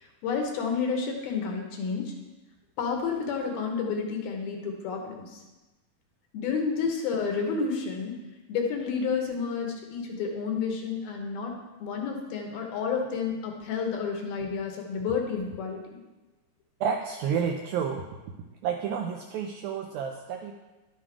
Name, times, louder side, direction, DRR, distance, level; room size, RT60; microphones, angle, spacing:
voice 1, 0.2-2.1 2.8-5.4 6.3-8.2 8.5-11.6 11.8-16.0, left 5 dB, 70° left, 2 dB, 2.7 m, -30 dB
voice 2, 16.8-18.1 18.6-20.5, right 7 dB, 90° right, 2 dB, 2.1 m, -30 dB
11.5 x 7.7 x 4.7 m, 1.1 s
omnidirectional pair, 4.9 m